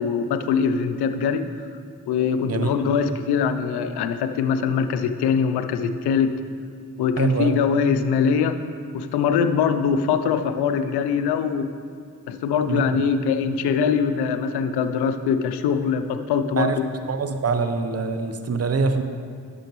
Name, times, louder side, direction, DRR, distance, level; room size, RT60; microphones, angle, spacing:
voice 1, 0.0-1.5 2.1-6.3 7.0-8.6 8.9-11.7 12.3-16.9, left 6 dB, 85° left, 9 dB, 0.5 m, -22 dB
voice 2, 7.2-7.6 12.7-13.0 16.6-16.8 17.1-19.0, right 4 dB, 40° right, 8 dB, 0.8 m, -24 dB
11.0 x 6.8 x 3.0 m, 2.2 s
supercardioid pair, 40°, 38 cm